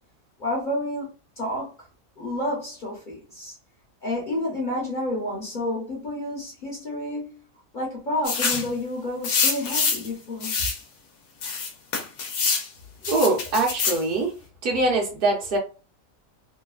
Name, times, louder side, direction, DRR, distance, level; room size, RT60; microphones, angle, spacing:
voice 1, 0.4-1.1 1.4-1.7 2.2-3.5 4.0-7.3 7.7-10.5, left 1 dB, 40° left, 1.0 m, -30 dB
sound 1, 8.2-8.7 9.2-10.1 10.4-10.8 11.4-12.7 13.0-14.0, left 5 dB, 85° left, 1.2 m, -25 dB
voice 2, 13.1-14.3 14.6-15.6, right 2 dB, 45° right, 0.9 m, -23 dB
3.0 x 2.2 x 2.3 m
omnidirectional pair, 1.4 m